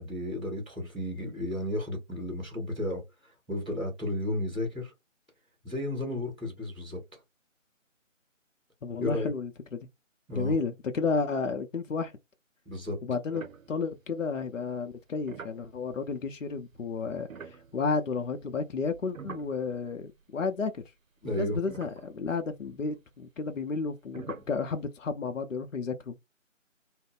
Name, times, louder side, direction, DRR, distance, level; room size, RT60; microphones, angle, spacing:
voice 1, 0.0-4.9 5.6-7.0 9.0-9.3 10.3-10.6 12.6-13.0 21.2-21.6, left 1 dB, 5° left, 1.1 m, -33 dB
voice 2, 8.8-9.9 10.4-12.1 13.0-20.8 21.3-26.2, left 4 dB, 70° left, 0.6 m, -32 dB
sound 1, 13.3-14.3 15.0-20.2 20.5-20.6 21.2-21.3 21.7-22.7 24.1-24.6, right 5 dB, 80° right, 0.6 m, -47 dB
2.4 x 2.1 x 3.6 m
figure-of-eight pair, 160°, 40 cm